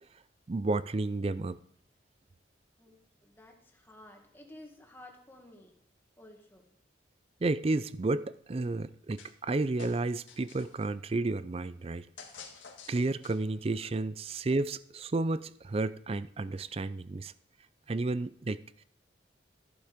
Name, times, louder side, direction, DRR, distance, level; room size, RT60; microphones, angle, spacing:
voice 1, 0.5-1.6 7.4-12.1 12.9-17.3 17.9-18.6, right 2 dB, 30° right, 0.4 m, -31 dB
voice 2, 2.8-5.8 6.2-6.7, left 1 dB, 10° left, 1.8 m, -53 dB
sound 1, 9.2-9.5 9.8-10.9 12.2-13.6, left 5 dB, 90° left, 2.0 m, -49 dB
14.0 x 8.3 x 5.1 m
head